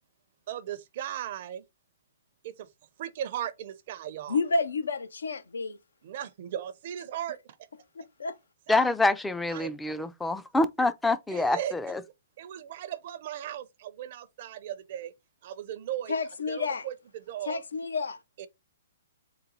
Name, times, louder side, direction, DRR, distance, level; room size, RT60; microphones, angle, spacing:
voice 1, 0.5-1.6 2.4-2.7 3.0-4.4 6.0-7.6 8.7-8.8 9.5-10.1 11.3-11.7 12.4-15.1 15.4-16.2 16.5-17.6 18.4-18.5, right 11 dB, 50° right, 0.5 m, -37 dB
voice 2, 4.3-5.8 7.9-8.4 16.1-16.9 17.4-18.2, left 4 dB, 85° left, 0.5 m, -30 dB
voice 3, 8.7-12.0, left 2 dB, 5° left, 0.3 m, -26 dB
3.9 x 2.3 x 4.0 m
hypercardioid pair, 135°, 0 cm